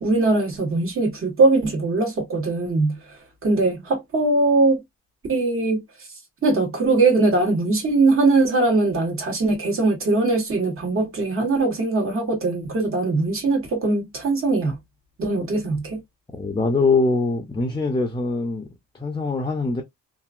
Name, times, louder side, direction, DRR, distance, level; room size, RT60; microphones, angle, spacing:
voice 1, 0.0-4.8 5.3-5.8 6.4-14.8 15.2-16.0, right 3 dB, 45° right, 1.4 m, -21 dB
voice 2, 16.3-18.7 18.9-19.8, left 3 dB, 15° left, 0.6 m, -23 dB
2.8 x 2.6 x 2.4 m
cardioid pair, 90°, 30 cm